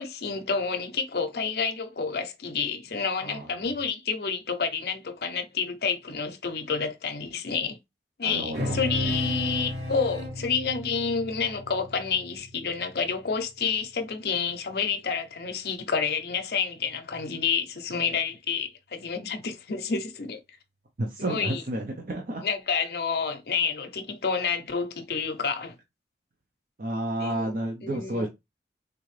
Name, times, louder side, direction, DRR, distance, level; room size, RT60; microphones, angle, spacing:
voice 1, 0.0-7.8 8.2-20.4 21.2-21.6 22.4-25.8 27.2-27.5 27.8-28.3, left 5 dB, 60° left, 0.6 m, -29 dB
voice 2, 3.2-3.7 8.2-8.8 21.0-22.4 26.8-28.3, right 1 dB, 50° right, 0.7 m, -31 dB
sound 1, 8.5-13.3, left 1 dB, 90° right, 2.6 m, -34 dB
3.7 x 2.8 x 3.1 m
head